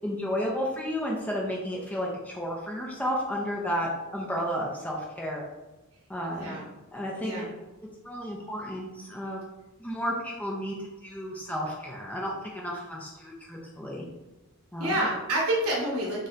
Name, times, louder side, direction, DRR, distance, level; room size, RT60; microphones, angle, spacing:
voice 1, 0.0-5.4 6.1-6.6 6.9-7.5 8.0-9.4 9.8-14.0 14.7-14.9, equal, 5° left, -3 dB, 0.3 m, -32 dB
voice 2, 14.8-16.3, right 1 dB, 90° right, -3 dB, 0.7 m, -28 dB
2.6 x 2.1 x 3.7 m, 1.1 s
head